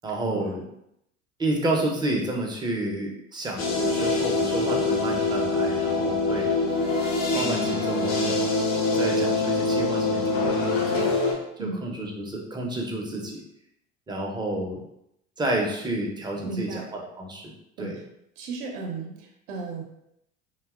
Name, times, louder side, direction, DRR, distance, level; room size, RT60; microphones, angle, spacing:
voice 1, 0.0-0.6 1.4-6.5 7.3-8.4 8.9-11.2 11.6-13.4 14.1-14.8 15.4-17.5 17.8-18.0, right 1 dB, 10° right, -1 dB, 0.5 m, -30 dB
sound 1, 3.6-11.3, left 3 dB, 85° left, 0.7 m, -24 dB
voice 2, 16.4-16.9 17.8-18.0 18.4-19.8, right 3 dB, 60° right, 0 dB, 0.6 m, -34 dB
2.7 x 2.2 x 2.3 m, 0.79 s
hypercardioid pair, 65°, 38 cm